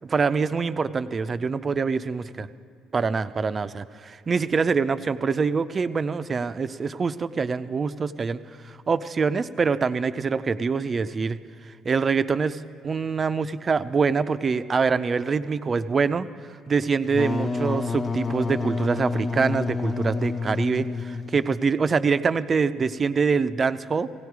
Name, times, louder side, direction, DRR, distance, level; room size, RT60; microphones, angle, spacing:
voice 1, 0.1-2.5 2.9-8.4 8.6-11.4 11.8-16.3 16.7-24.1, right 5 dB, 40° right, 12 dB, 0.5 m, -25 dB
Wind instrument woodwind instrument, 17.1-21.6, left 4 dB, 35° left, 0.6 m, -29 dB
16.5 x 15.5 x 4.7 m, 2.4 s
hypercardioid pair, 65°, 0 cm